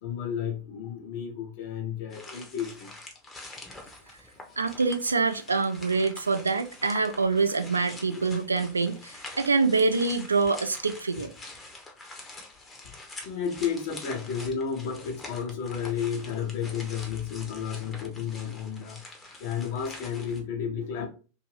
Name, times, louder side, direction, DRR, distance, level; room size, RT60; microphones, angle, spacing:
voice 1, 0.0-2.9 8.1-8.2 12.8-12.9 13.2-19.0 19.4-21.1, left 7 dB, 50° left, 0.8 m, -32 dB
sound 1, 2.1-20.4, left 2 dB, 15° left, 0.7 m, -46 dB
voice 2, 4.6-11.3, right 4 dB, 80° right, 0.3 m, -25 dB
2.6 x 2.6 x 3.2 m
figure-of-eight pair, 90°, 0 cm